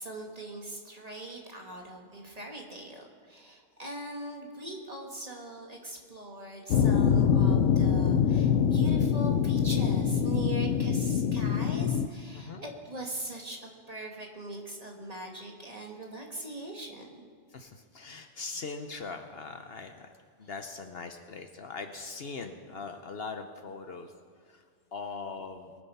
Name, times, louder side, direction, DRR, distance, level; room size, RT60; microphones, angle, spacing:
voice 1, 0.0-17.3 20.4-20.5, right 1 dB, 30° right, 1 dB, 1.9 m, -41 dB
sound 1, 6.7-12.1, left 7 dB, 80° left, 0.9 m, -24 dB
voice 2, 12.3-12.7 17.5-20.1 20.4-24.1 24.5-24.6 24.9-25.7, left 4 dB, 55° left, 6 dB, 1.0 m, -41 dB
22.0 x 7.8 x 5.5 m, 2.1 s
omnidirectional pair, 1.3 m